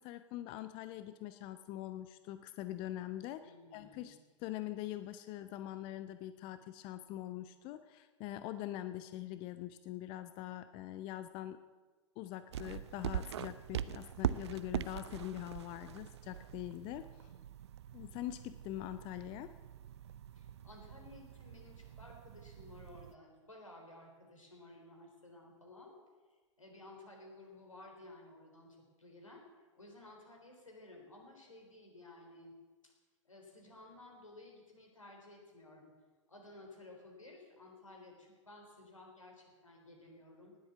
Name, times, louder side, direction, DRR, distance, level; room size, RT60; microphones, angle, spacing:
voice 1, 0.0-11.6 12.2-17.3 17.9-19.5, left 13 dB, 30° left, 12 dB, 0.6 m, -43 dB
voice 2, 3.4-4.2 20.3-25.9 26.6-29.4 29.8-32.6 32.8-32.9 33.3-35.9 36.3-40.6, left 2 dB, 80° left, 2 dB, 3.8 m, -55 dB
sound 1, 12.5-23.1, right 10 dB, 60° right, 0.6 m, -43 dB
19.0 x 7.9 x 7.0 m, 1.4 s
figure-of-eight pair, 105°, 16 cm